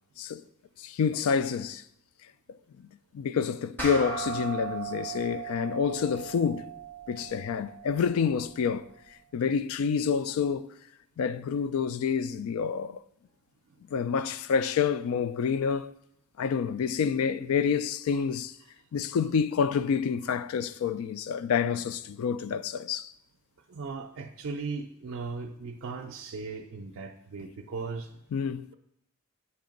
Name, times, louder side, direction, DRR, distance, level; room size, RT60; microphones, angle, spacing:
voice 1, 0.8-1.8 2.5-2.9 3.1-6.7 7.1-8.9 9.3-10.7 11.2-13.0 13.9-15.9 16.4-18.6 18.9-23.1 28.3-28.7, left 6 dB, 80° left, 0.3 m, -28 dB
sound 1, 3.8-8.6, right 5 dB, 10° left, 0.9 m, -38 dB
voice 2, 23.7-28.1, right 4 dB, 75° right, 0.4 m, -37 dB
7.8 x 2.8 x 5.1 m
head